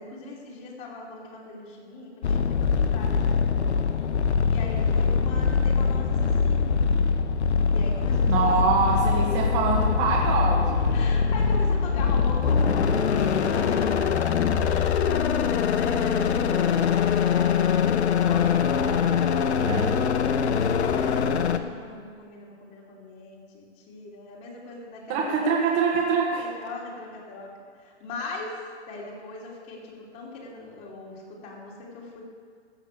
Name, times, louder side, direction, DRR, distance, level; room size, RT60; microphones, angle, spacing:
voice 1, 0.0-3.5 3.9-4.1 4.4-6.8 7.7-8.6 10.9-25.4 26.4-27.5 27.8-28.6 28.9-32.2, left 3 dB, 35° left, -4 dB, 2.9 m, -40 dB
sound 1, 2.2-21.6, left 6 dB, 75° left, 1.0 m, -23 dB
voice 2, 8.3-10.8 19.5-19.9 25.1-26.4, right 5 dB, 30° right, -1 dB, 1.5 m, -24 dB
14.0 x 6.2 x 8.2 m, 2.1 s
hypercardioid pair, 145°, 33 cm